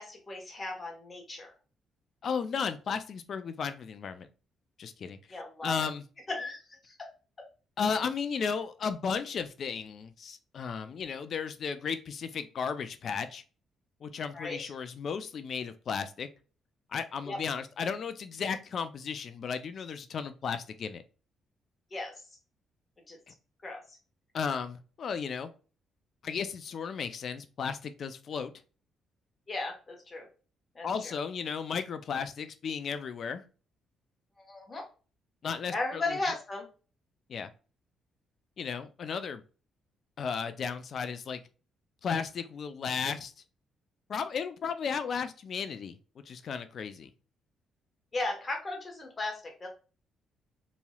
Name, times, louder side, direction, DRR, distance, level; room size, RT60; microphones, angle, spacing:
voice 1, 0.0-1.5 5.3-5.9 6.3-7.1 14.3-14.6 17.2-17.4 21.9-22.1 23.1-23.2 23.6-24.0 29.5-30.3 30.7-31.2 34.4-34.8 35.7-36.6 48.1-49.7, left 2 dB, 30° left, 1 dB, 1.1 m, -36 dB
voice 2, 2.2-4.3 4.8-6.1 7.8-13.4 14.0-16.3 16.9-21.0 24.3-25.5 26.2-28.5 30.8-33.4 35.4-36.2 37.3-37.5 38.6-39.4 40.2-41.4 42.0-43.3 44.1-46.0 46.3-47.1, left 6 dB, 55° left, 11 dB, 0.4 m, -34 dB
3.0 x 2.7 x 2.3 m, 0.36 s
cardioid pair, 90°, 0 cm